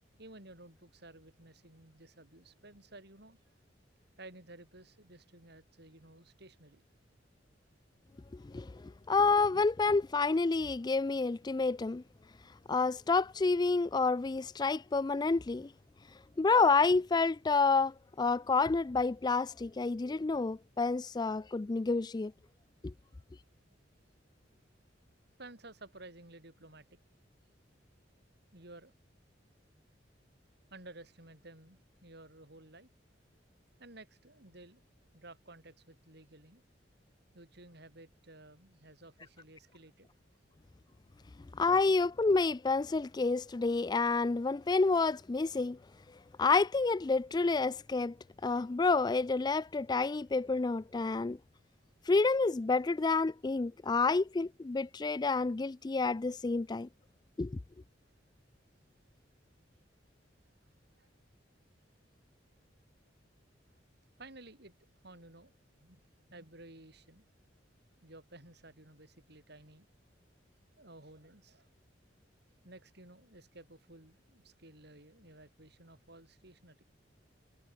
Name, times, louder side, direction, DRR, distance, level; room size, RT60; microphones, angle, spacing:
voice 1, 0.2-3.4 4.2-6.8 25.4-26.9 28.5-28.9 30.7-32.9 33.8-34.8 35.1-36.6 37.3-40.1 61.0-61.1 64.2-64.7 65.0-65.5 65.8-66.0 66.3-67.3 68.0-69.9 70.8-71.7 72.6-76.8, right 2 dB, 60° right, 6.6 m, -54 dB
voice 2, 8.3-12.0 12.7-15.7 16.4-22.3 22.8-22.9 41.5-45.8 46.4-48.2 48.4-51.4 52.1-56.9 57.4-57.6, left 4 dB, 20° left, 0.4 m, -29 dB
head